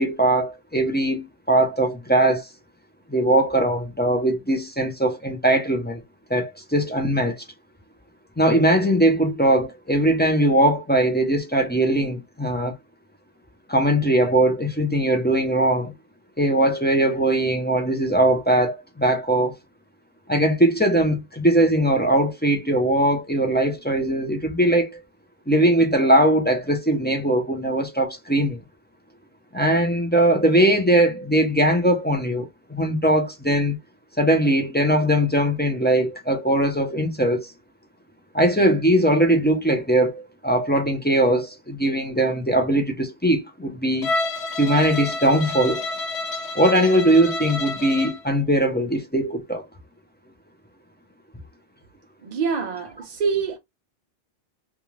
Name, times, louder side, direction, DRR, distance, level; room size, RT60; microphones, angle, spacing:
voice 1, 0.0-2.5 3.1-6.0 6.3-7.4 8.4-12.8 13.7-15.9 16.4-19.6 20.3-25.0 25.5-28.6 29.5-33.8 34.2-37.5 38.3-44.1 44.6-45.8 46.5-49.7, right 1 dB, 15° left, 0.5 m, -20 dB
Bowed string instrument, 44.0-48.2, left 3 dB, 85° left, 0.9 m, -29 dB
voice 2, 52.2-53.6, right 5 dB, 55° right, 0.5 m, -25 dB
2.5 x 2.3 x 3.1 m
omnidirectional pair, 1.1 m